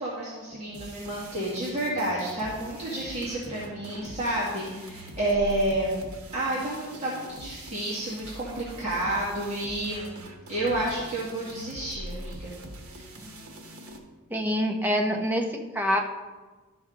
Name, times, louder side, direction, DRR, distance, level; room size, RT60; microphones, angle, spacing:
voice 1, 0.0-6.0 6.3-10.2 10.5-12.5 12.9-13.0, right 1 dB, 30° right, -8 dB, 1.9 m, -30 dB
sound 1, 0.7-14.0, right 1 dB, 70° right, 1.2 m, -43 dB
voice 2, 14.3-16.0, equal, 10° right, 2 dB, 0.9 m, -26 dB
12.5 x 6.1 x 3.8 m, 1.3 s
head